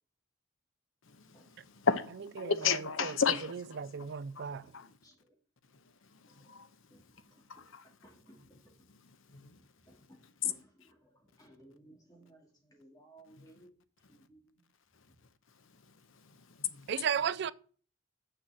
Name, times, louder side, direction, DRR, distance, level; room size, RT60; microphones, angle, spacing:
voice 1, 1.0-5.0 5.7-7.9 8.9-9.6 9.9-10.0 13.3-13.5 14.2-14.3 14.9-15.1 15.5-16.9, left 5 dB, 65° left, 0.8 m, -36 dB
voice 2, 3.8-4.7 16.9-17.5, right 7 dB, 55° right, 0.4 m, -33 dB
voice 3, 4.6-5.3 6.3-6.6 6.9-8.9 9.3-9.4 9.8-13.7 14.1-14.7 15.1-15.2, right 1 dB, 20° left, 2.2 m, -60 dB
6.8 x 6.0 x 7.4 m
head